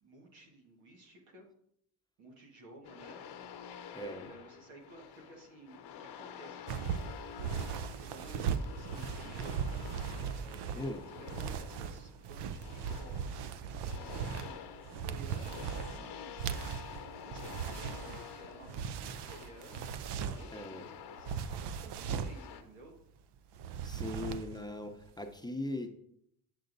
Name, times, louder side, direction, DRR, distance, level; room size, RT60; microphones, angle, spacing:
voice 1, 0.0-1.5 2.2-3.2 4.0-7.5 8.0-9.7 10.4-16.8 17.2-19.8 20.2-22.9, right 2 dB, 90° right, 1 dB, 1.7 m, -54 dB
sound 1, 2.8-22.6, left 8 dB, 55° left, 0.8 m, -49 dB
voice 2, 3.9-4.3 10.7-11.0 20.5-20.9 23.8-25.9, left 1 dB, 10° left, 4 dB, 0.7 m, -39 dB
sound 2, 6.7-20.6 21.2-22.4 23.5-24.7 24.9-25.2, right 7 dB, 60° right, 0.6 m, -38 dB
7.9 x 6.6 x 2.6 m, 0.72 s
supercardioid pair, 70°, 47 cm